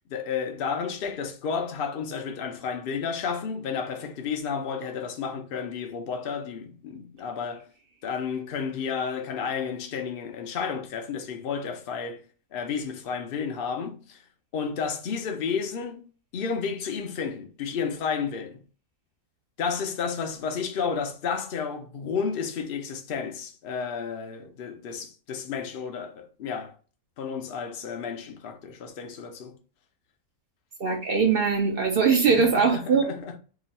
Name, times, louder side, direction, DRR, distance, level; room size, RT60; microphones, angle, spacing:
voice 1, 0.1-7.7 8.0-12.2 12.5-14.2 14.5-16.1 16.3-18.6 19.6-26.7 27.2-29.6 32.3-33.4, left 6 dB, 55° left, 0.7 m, -32 dB
voice 2, 30.8-33.0, right 5 dB, 55° right, 0.6 m, -21 dB
3.0 x 2.4 x 4.0 m
omnidirectional pair, 1.5 m